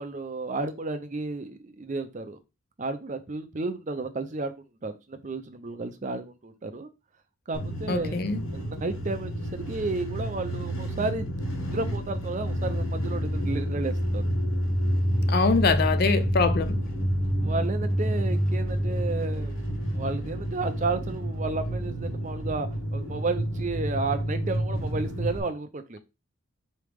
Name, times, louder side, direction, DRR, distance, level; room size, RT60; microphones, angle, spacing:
voice 1, 0.0-2.4 2.8-4.5 4.8-6.9 7.5-8.2 8.5-14.2 17.4-19.6 19.9-26.0, right 3 dB, 35° right, 0.5 m, -32 dB
sound 1, 7.5-25.4, equal, 80° left, 1.5 m, -29 dB
voice 2, 7.9-8.4 15.3-16.8, left 4 dB, 45° left, 0.4 m, -24 dB
4.7 x 3.2 x 3.4 m
head